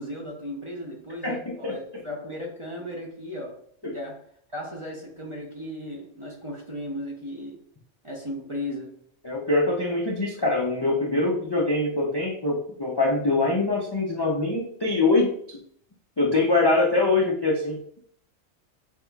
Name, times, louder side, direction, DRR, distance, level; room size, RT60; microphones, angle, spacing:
voice 1, 0.0-4.2 4.5-7.6 8.0-9.0, left 1 dB, 30° right, -2 dB, 0.6 m, -36 dB
voice 2, 1.2-2.0 3.8-4.0 9.2-15.6 16.2-18.0, left 2 dB, 35° left, -3 dB, 0.4 m, -24 dB
5.9 x 2.8 x 2.3 m, 0.63 s
omnidirectional pair, 1.3 m